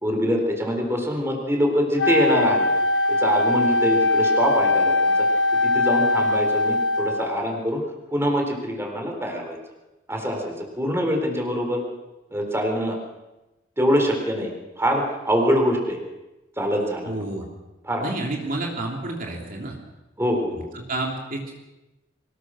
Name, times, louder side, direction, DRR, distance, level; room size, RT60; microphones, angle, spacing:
voice 1, 0.0-2.7 3.1-5.1 5.6-7.8 8.1-9.6 10.1-11.8 12.3-13.0 13.8-16.0 16.6-17.2 17.8-18.1 20.2-20.7, equal, 15° right, 2 dB, 3.9 m, -24 dB
Wind instrument woodwind instrument, 2.0-7.5, left 2 dB, 70° left, 1.3 m, -21 dB
voice 2, 17.1-17.5 18.0-19.7 20.5-21.5, right 2 dB, 50° right, 0 dB, 3.2 m, -30 dB
23.5 x 20.0 x 6.4 m, 1.0 s
head